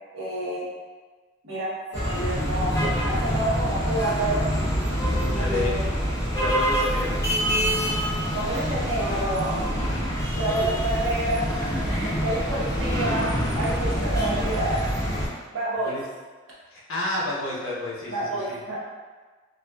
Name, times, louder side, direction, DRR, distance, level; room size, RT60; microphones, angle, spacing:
voice 1, 0.1-0.7 1.4-4.5 5.3-5.9 8.3-9.6 10.3-14.8 15.5-15.9 18.1-18.8, right 1 dB, 80° right, -8 dB, 0.9 m, -29 dB
sound 1, 1.9-15.3, equal, 15° left, 0.5 m, -26 dB
voice 2, 5.3-5.8 6.4-7.2 8.4-8.6 10.4-10.7 15.8-16.0 16.7-18.6, left 2 dB, 85° left, -5 dB, 0.7 m, -31 dB
2.4 x 2.3 x 2.2 m, 1.3 s
head